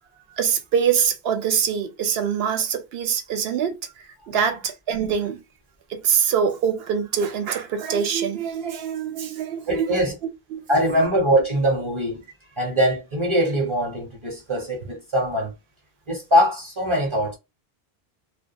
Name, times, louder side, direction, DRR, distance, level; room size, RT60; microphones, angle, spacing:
voice 1, 0.3-5.4 5.9-10.1 10.5-10.6 11.0-11.1, right 7 dB, 75° right, 0.8 m, -24 dB
voice 2, 9.7-10.1 10.7-12.3 12.6-15.5 16.1-17.4, equal, 30° right, 0.7 m, -22 dB
2.3 x 2.1 x 2.8 m
omnidirectional pair, 1.0 m